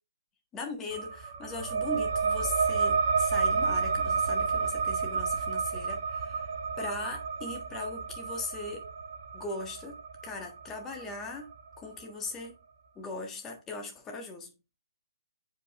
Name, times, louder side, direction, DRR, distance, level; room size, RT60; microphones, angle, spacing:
voice 1, 0.5-6.4 6.8-8.9 9.3-10.0 10.2-11.5 11.8-12.5 12.9-14.5, left 3 dB, 15° left, 1.4 m, -39 dB
sound 1, 0.9-12.0, right 5 dB, 45° right, 1.1 m, -31 dB
7.7 x 5.1 x 3.4 m
figure-of-eight pair, 135°, 2 cm